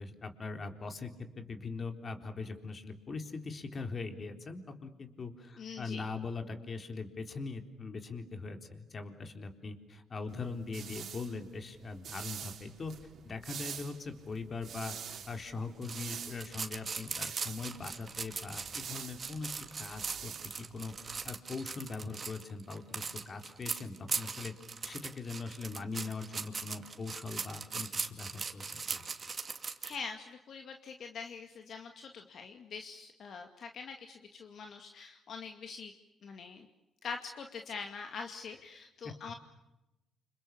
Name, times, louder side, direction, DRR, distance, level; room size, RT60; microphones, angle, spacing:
voice 1, 0.0-12.9 13.2-15.0 15.3-19.5 19.8-24.5 24.8-29.1 39.0-39.1, left 4 dB, 40° left, 6 dB, 4.0 m, -41 dB
voice 2, 5.6-6.0 29.8-35.9 36.2-36.7 37.0-39.3, left 5 dB, 60° left, 5 dB, 2.3 m, -44 dB
sound 1, 10.3-21.3, right 8 dB, 65° right, 3.6 m, -47 dB
sound 2, 15.8-30.0, right 5 dB, 35° right, 2.4 m, -39 dB
29.5 x 28.0 x 7.2 m, 0.95 s
cardioid pair, 90°, 0 cm